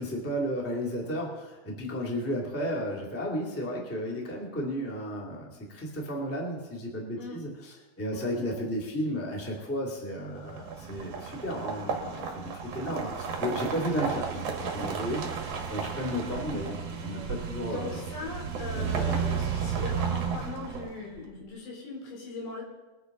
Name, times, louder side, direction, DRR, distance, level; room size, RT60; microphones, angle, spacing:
voice 1, 0.0-15.2 15.7-18.0 18.7-19.6, equal, 5° left, -2 dB, 1.5 m, -33 dB
sound 1, 10.4-21.2, right 6 dB, 55° right, 1.8 m, -33 dB
voice 2, 17.7-22.6, left 3 dB, 80° left, -3 dB, 5.9 m, -40 dB
22.5 x 9.7 x 4.0 m, 1.2 s
omnidirectional pair, 4.9 m